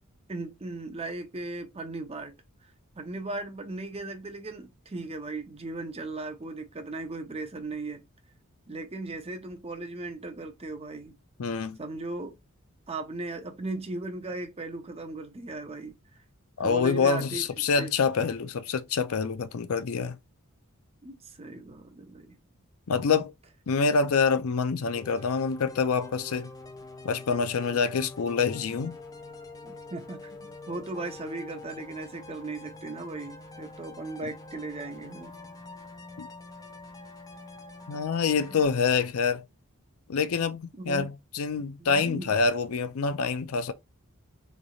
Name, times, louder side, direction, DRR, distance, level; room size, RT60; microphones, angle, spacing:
voice 1, 0.3-2.4 3.0-8.0 8.7-11.2 11.8-12.4 12.9-15.9 16.6-17.9 21.0-22.4 29.6-35.3 38.5-38.7 40.7-41.1 41.8-42.3, right 2 dB, 25° right, 0.6 m, -37 dB
voice 2, 11.4-11.8 16.6-20.2 22.9-23.3 23.7-26.5 27.0-28.9 36.2-36.3 37.9-39.4 40.1-43.7, left 5 dB, 70° left, 0.5 m, -26 dB
sound 1, 24.9-38.7, left 2 dB, 15° left, 0.6 m, -45 dB
4.0 x 3.2 x 2.3 m
head